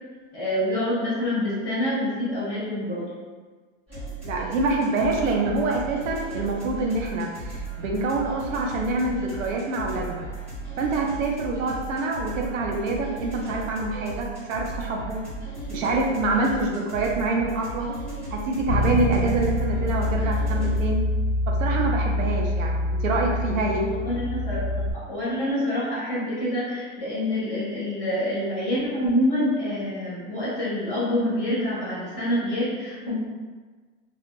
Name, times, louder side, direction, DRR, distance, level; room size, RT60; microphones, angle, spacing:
voice 1, 0.3-3.0 23.8-33.1, left 1 dB, 5° left, -22 dB, 0.3 m, -26 dB
sound 1, 3.9-20.8, right 2 dB, 15° right, 1.1 m, -36 dB
voice 2, 4.2-10.2 10.8-15.2 15.7-17.9 18.3-21.0 21.6-23.9, right 2 dB, 75° right, 0 dB, 0.7 m, -26 dB
Bass guitar, 18.7-24.9, left 1 dB, 50° left, 0.6 m, -25 dB
2.7 x 2.0 x 2.6 m, 1.4 s
supercardioid pair, 175°, 40 cm